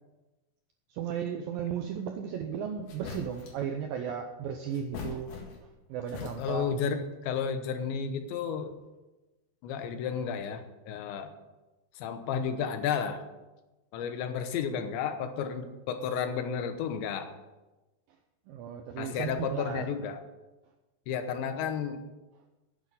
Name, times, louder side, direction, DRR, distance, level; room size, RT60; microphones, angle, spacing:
voice 1, 0.9-5.3 5.9-6.7 18.5-19.9, right 8 dB, 80° right, 5 dB, 2.0 m, -35 dB
sound 1, 2.9-3.7 4.7-5.8 6.1-6.8, left 5 dB, 60° left, 3.5 m, -42 dB
voice 2, 6.2-8.8 9.6-11.3 12.0-13.2 13.9-17.3 19.0-20.2 21.1-22.0, left 7 dB, 85° left, 8 dB, 3.3 m, -32 dB
10.0 x 8.3 x 9.2 m, 1.1 s
omnidirectional pair, 5.1 m